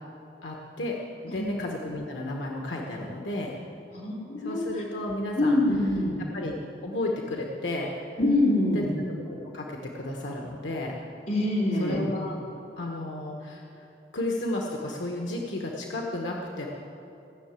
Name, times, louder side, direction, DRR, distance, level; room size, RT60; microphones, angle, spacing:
voice 1, 0.4-1.0 1.2-3.6 4.4-5.6 6.3-7.9 8.7-10.9 11.8-12.4 12.8-13.8 14.1-16.7, left 1 dB, 90° left, 0 dB, 1.3 m, -33 dB
voice 2, 3.9-4.7 5.4-6.2 8.2-8.9 11.3-12.0, left 1 dB, 45° left, -5 dB, 3.7 m, -25 dB
16.0 x 6.8 x 8.9 m, 3.0 s
head